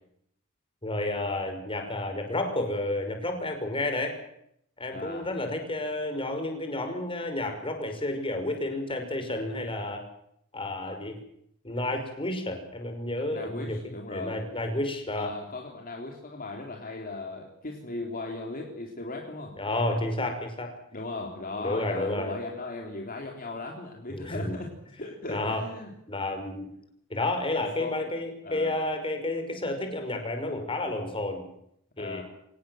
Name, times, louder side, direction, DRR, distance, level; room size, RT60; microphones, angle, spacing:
voice 1, 0.8-4.2 4.8-10.0 10.5-11.2 11.6-13.8 14.1-15.3 19.6-20.7 21.6-22.3 24.1-24.6 25.3-25.6 26.1-26.7 27.1-31.4 32.0-32.2, left 2 dB, 25° left, 5 dB, 5.6 m, -31 dB
voice 2, 4.9-5.3 13.3-14.4 15.1-19.6 20.9-24.7 25.0-25.9 27.8-28.0 28.4-28.8 32.0-32.2, left 2 dB, 40° left, 1 dB, 3.7 m, -37 dB
25.0 x 19.0 x 7.9 m, 0.73 s
head